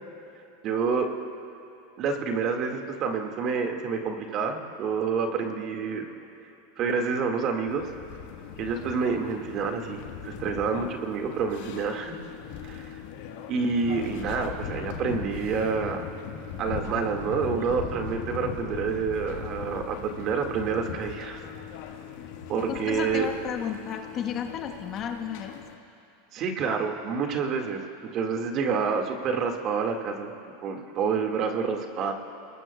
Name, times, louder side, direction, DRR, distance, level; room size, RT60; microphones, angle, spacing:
voice 1, 0.6-1.1 2.0-6.0 6.8-7.8 8.6-12.2 12.6-13.0 13.5-16.0 16.6-21.4 22.5-23.3 26.3-30.3 30.6-32.1, right 5 dB, 45° right, 3 dB, 1.9 m, -28 dB
sound 1, 7.7-25.8, left 8 dB, 65° left, 1.4 m, -39 dB
voice 2, 22.7-25.5, left 8 dB, 40° left, 4 dB, 1.2 m, -33 dB
28.5 x 20.0 x 2.3 m, 2.9 s
hypercardioid pair, 105°, 0 cm